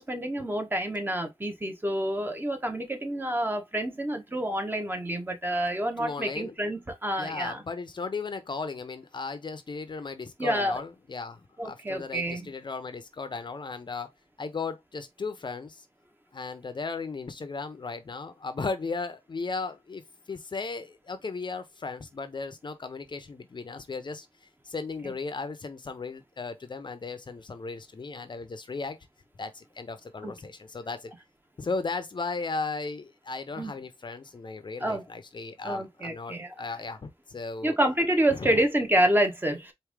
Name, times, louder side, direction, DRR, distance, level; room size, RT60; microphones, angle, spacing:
voice 1, 0.0-7.6 10.4-10.8 11.6-12.5 25.0-25.1 30.2-30.3 33.6-33.7 34.8-35.0 35.6-36.5 37.6-39.7, right 1 dB, 20° right, 1.3 m, -28 dB
voice 2, 6.0-6.5 7.1-14.1 14.4-15.9 16.3-29.0 29.4-31.1 31.6-37.7 38.3-38.7, left 4 dB, 50° left, 0.7 m, -36 dB
4.7 x 2.7 x 3.6 m
wide cardioid pair, 95°, 10 cm